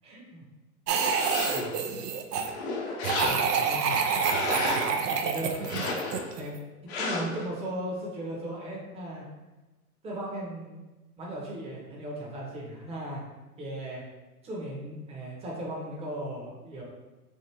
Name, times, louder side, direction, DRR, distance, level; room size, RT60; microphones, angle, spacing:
voice 1, 0.0-0.4 1.5-1.7 3.2-4.0 5.2-5.6 6.3-6.5 6.9-9.2 10.0-10.8 11.2-13.2 13.6-14.0 14.4-16.8, right 1 dB, 15° right, -4 dB, 0.7 m, -37 dB
sound 1, 0.9-1.8 2.3-3.7 4.1-5.0 5.6-6.3 6.9-7.5, left 3 dB, 45° left, 0.7 m, -33 dB
sound 2, 0.9-2.5 3.0-6.5, right 6 dB, 85° right, 0.6 m, -28 dB
3.4 x 2.4 x 2.8 m, 1.1 s
hypercardioid pair, 110°, 46 cm